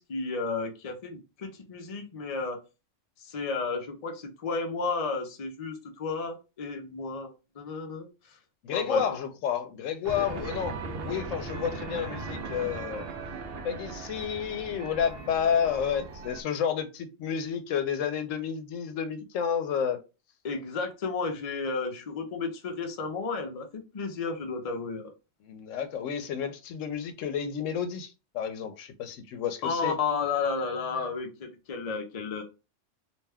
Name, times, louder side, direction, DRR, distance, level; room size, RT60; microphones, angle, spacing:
voice 1, 0.0-2.6 3.2-8.4 8.7-9.0 20.4-25.1 29.6-32.4, left 4 dB, 40° left, 0.5 m, -32 dB
voice 2, 8.6-10.8 11.0-13.0 13.6-20.0 25.4-29.9, left 8 dB, 85° left, 0.9 m, -30 dB
sound 1, 10.0-16.4, right 3 dB, 60° right, 0.7 m, -38 dB
2.6 x 2.2 x 3.3 m
omnidirectional pair, 1.3 m